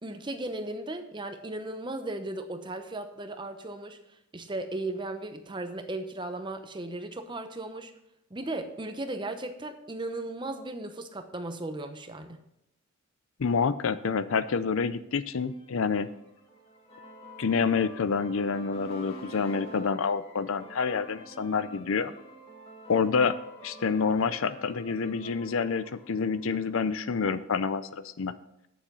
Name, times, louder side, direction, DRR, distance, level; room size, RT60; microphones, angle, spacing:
voice 1, 0.0-4.0 4.3-7.9 8.3-12.4, right 2 dB, 20° right, 7 dB, 0.8 m, -36 dB
voice 2, 13.4-16.1 17.4-22.1 22.9-23.4 23.6-28.3, left 5 dB, 65° left, 14 dB, 0.5 m, -28 dB
sound 1, 15.3-27.1, equal, 25° left, 1.9 m, -48 dB
9.3 x 7.2 x 5.5 m, 0.82 s
head